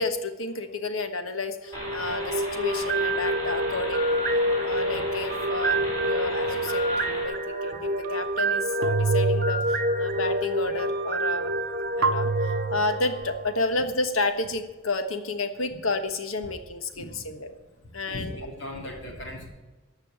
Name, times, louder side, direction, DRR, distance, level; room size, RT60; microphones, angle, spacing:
voice 1, 0.0-4.2 4.6-11.5 12.0-17.5 17.9-18.3, left 3 dB, 85° left, 8 dB, 1.3 m, -31 dB
sound 1, 1.7-7.2, equal, 20° left, 3.8 m, -37 dB
sound 2, 1.7-13.8, right 1 dB, 45° right, 1.1 m, -27 dB
sound 3, 6.5-6.6 8.8-10.5 12.0-13.5, right 4 dB, 80° right, 0.7 m, -28 dB
voice 2, 18.0-19.5, left 1 dB, 60° left, 0 dB, 3.1 m, -37 dB
13.5 x 5.6 x 8.9 m, 1.2 s
head